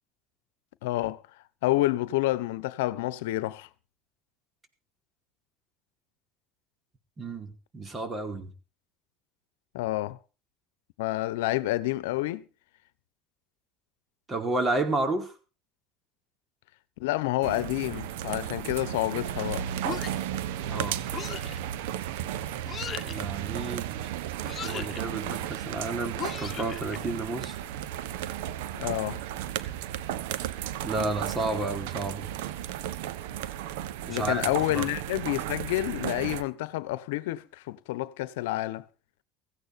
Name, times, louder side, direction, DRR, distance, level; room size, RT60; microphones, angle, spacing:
voice 1, 0.8-1.2 1.6-3.7 9.7-10.2 11.0-12.5 17.0-19.7 28.7-29.2 34.1-38.8, left 17 dB, 85° left, 0.9 m, -29 dB
voice 2, 7.2-8.5 14.3-15.3 20.6-21.0 23.0-23.9 24.6-27.6 30.8-32.3 34.0-34.4 34.7-34.9, right 2 dB, 30° right, 4.7 m, -31 dB
sound 1, 17.4-36.4, right 11 dB, 80° right, 1.2 m, -34 dB
sound 2, 19.8-20.4 21.1-21.6 22.7-23.2 24.4-25.0 26.2-27.0, left 8 dB, 35° left, 1.5 m, -37 dB
16.5 x 15.5 x 4.2 m
supercardioid pair, 95°, 0 cm